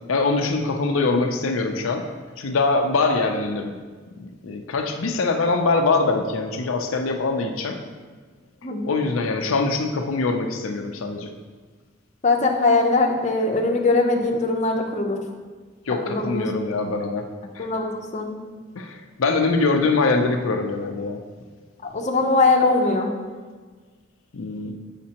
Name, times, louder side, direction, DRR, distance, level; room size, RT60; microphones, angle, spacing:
voice 1, 0.1-2.1 2.4-3.7 4.2-7.8 8.8-11.3 15.9-17.3 17.5-17.7 18.8-21.2 24.3-24.7, left 3 dB, 90° left, 4 dB, 0.5 m, -23 dB
voice 2, 12.2-15.2 16.1-16.5 17.6-18.3 21.8-23.1, left 3 dB, 35° left, 0 dB, 0.6 m, -21 dB
7.4 x 5.1 x 2.9 m, 1.4 s
head